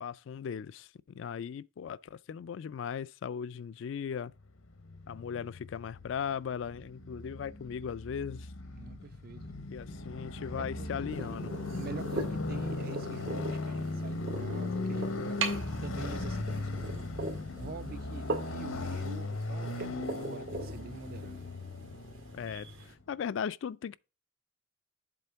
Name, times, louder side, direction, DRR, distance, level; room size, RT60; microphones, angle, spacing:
voice 1, 0.0-4.3 5.1-8.5 9.7-11.5 22.3-22.7 23.1-24.0, left 7 dB, 65° left, 0.3 m, -38 dB
Motorcycle, 4.7-22.9, left 2 dB, 90° left, 1.0 m, -38 dB
voice 2, 8.7-9.5 10.6-17.0 17.6-21.5, right 4 dB, 45° right, 0.4 m, -46 dB
sound 1, 11.1-22.9, right 3 dB, 75° right, 1.9 m, -41 dB
7.6 x 3.7 x 5.6 m
head